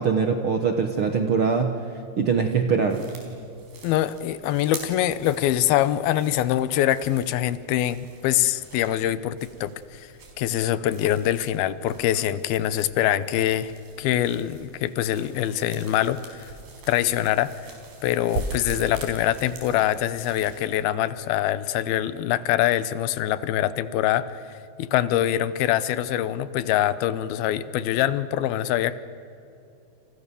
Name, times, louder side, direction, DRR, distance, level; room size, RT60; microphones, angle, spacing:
voice 1, 0.0-1.8 2.2-3.0, right 5 dB, 65° right, 5 dB, 1.3 m, -22 dB
sound 1, 2.9-20.6, right 2 dB, 85° right, 6.3 m, -42 dB
voice 2, 3.8-10.1 10.4-13.7 14.0-16.5 16.9-17.5 18.0-24.4 24.8-29.0, left 12 dB, 85° left, 15 dB, 2.8 m, -24 dB
29.0 x 29.0 x 7.0 m, 2.8 s
omnidirectional pair, 4.2 m